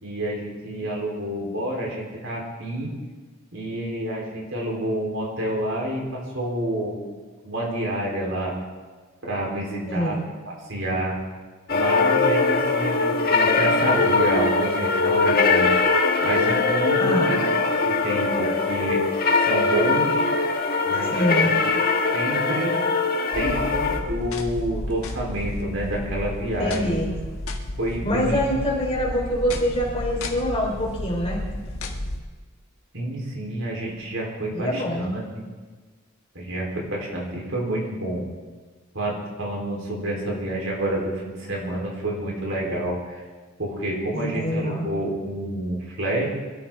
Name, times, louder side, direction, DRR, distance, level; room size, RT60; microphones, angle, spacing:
voice 1, 0.0-2.9 3.5-7.0 7.4-8.6 9.2-10.2 10.5-11.2 11.7-15.7 16.2-17.4 17.8-19.0 19.4-20.2 20.8-21.5 22.1-22.8 23.3-27.0 27.8-28.4 32.9-35.4 36.3-38.3 38.9-43.2 43.6-46.3, right 1 dB, 60° right, -2 dB, 4.0 m, -28 dB
voice 2, 9.9-10.2 17.0-17.3 21.1-21.5 26.6-27.1 28.0-31.4 34.5-35.1 44.1-44.9, equal, 25° left, -1 dB, 3.3 m, -25 dB
sound 1, 11.7-24.0, left 3 dB, 45° left, 1.5 m, -21 dB
sound 2, 23.3-32.2, left 1 dB, 80° left, 1.6 m, -32 dB
24.5 x 13.0 x 3.8 m, 1.4 s
head